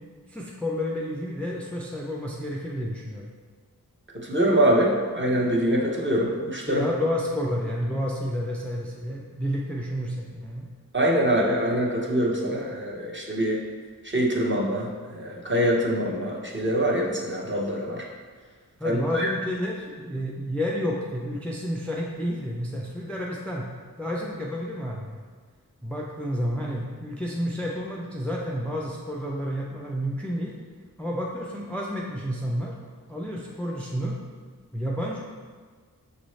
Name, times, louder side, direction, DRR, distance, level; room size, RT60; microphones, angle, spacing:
voice 1, 0.3-3.3 6.7-10.7 18.8-23.7 24.0-25.2 25.8-30.6 31.0-32.7 33.1-34.2 34.7-35.2, equal, 5° left, -3 dB, 0.4 m, -30 dB
voice 2, 4.1-6.8 10.9-13.6 14.0-18.0 18.8-19.3, right 1 dB, 30° right, -3 dB, 0.8 m, -24 dB
6.2 x 2.6 x 3.1 m, 1.5 s
wide cardioid pair, 75°, 37 cm